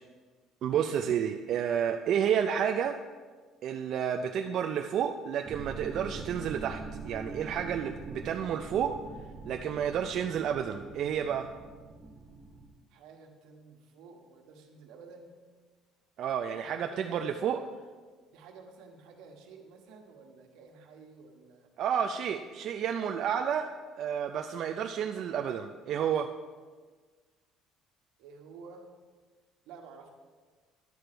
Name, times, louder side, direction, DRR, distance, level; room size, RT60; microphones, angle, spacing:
voice 1, 0.6-3.0 3.6-9.0 9.5-11.5 16.2-17.6 21.8-26.3, right 8 dB, 50° right, 5 dB, 0.4 m, -30 dB
sound 1, 5.4-12.7, right 3 dB, 30° right, 1.3 m, -44 dB
voice 2, 12.9-15.3 16.6-17.5 18.3-21.7 28.2-28.9 29.6-30.1, right 4 dB, 80° right, 3 dB, 1.4 m, -51 dB
11.0 x 4.5 x 6.8 m, 1.5 s
cardioid pair, 150°, 0 cm